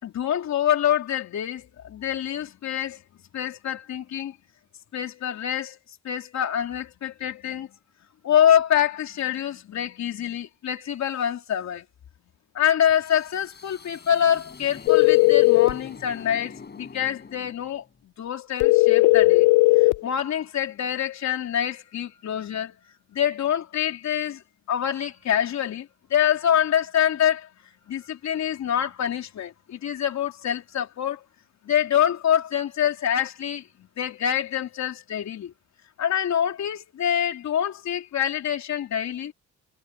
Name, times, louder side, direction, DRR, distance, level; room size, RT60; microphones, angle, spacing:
voice 1, 0.0-3.0 3.3-4.3 4.9-5.8 6.0-7.7 8.2-11.8 12.5-19.5 19.7-24.4 24.7-27.5 27.9-31.2 31.6-35.5 36.0-39.3, left 10 dB, 65° left, 3.4 m, -26 dB
sound 1, 12.9-18.0, left 5 dB, 35° left, 5.7 m, -45 dB
sound 2, 14.9-15.8 18.6-20.0, left 22 dB, 90° left, 0.6 m, -16 dB
cardioid pair, 90°, 30 cm